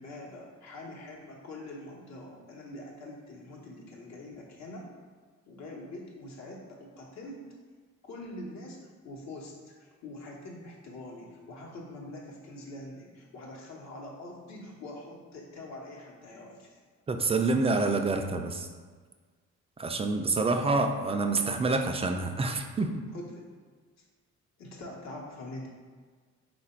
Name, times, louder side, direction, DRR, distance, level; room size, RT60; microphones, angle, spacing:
voice 1, 0.0-4.9 5.5-7.5 8.0-16.8 23.1-23.5 24.6-25.7, left 1 dB, 60° left, -2 dB, 1.1 m, -44 dB
voice 2, 17.1-18.7 19.8-23.0, right 3 dB, 20° right, 6 dB, 0.3 m, -27 dB
3.9 x 2.5 x 4.4 m, 1.5 s
cardioid pair, 90°, 30 cm